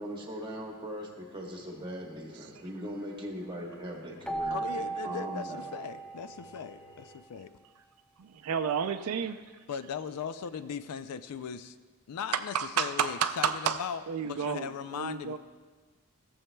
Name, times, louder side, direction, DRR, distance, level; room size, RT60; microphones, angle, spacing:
voice 1, 0.0-5.8, equal, 20° right, 0 dB, 1.2 m, -40 dB
sound 1, 1.4-7.2, left 1 dB, 65° left, 1.4 m, -56 dB
Keyboard (musical), 4.2-6.9, right 3 dB, 5° left, 0.4 m, -36 dB
voice 2, 4.5-7.5 9.7-11.8 12.1-14.0 14.3-15.4, left 7 dB, 90° left, 13 dB, 0.4 m, -38 dB
voice 3, 8.2-9.4 12.3-13.8 14.1-15.4, right 7 dB, 75° right, 9 dB, 0.4 m, -31 dB
15.5 x 7.1 x 2.2 m, 1.4 s
head